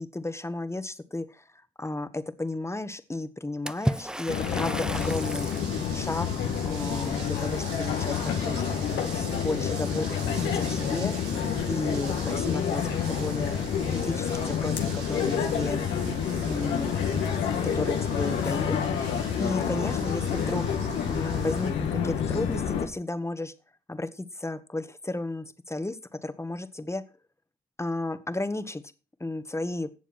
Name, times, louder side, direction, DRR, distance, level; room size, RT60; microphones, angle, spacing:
voice 1, 0.0-1.4 1.8-5.5 5.9-6.3 6.6-8.6 9.0-11.1 11.7-13.6 13.9-15.8 16.4-20.6 21.0-23.5 23.9-27.0 27.8-28.8 29.2-29.9, left 2 dB, 15° left, 11 dB, 1.7 m, -33 dB
Water / Splash splatter, 3.7-5.7, right 1 dB, 5° right, 0.6 m, -32 dB
sound 1, 4.3-22.9, left 7 dB, 80° left, 1.9 m, -28 dB
sound 2, 4.9-21.7, right 6 dB, 90° right, 1.8 m, -44 dB
16.5 x 7.1 x 4.4 m, 0.34 s
hypercardioid pair, 45°, 18 cm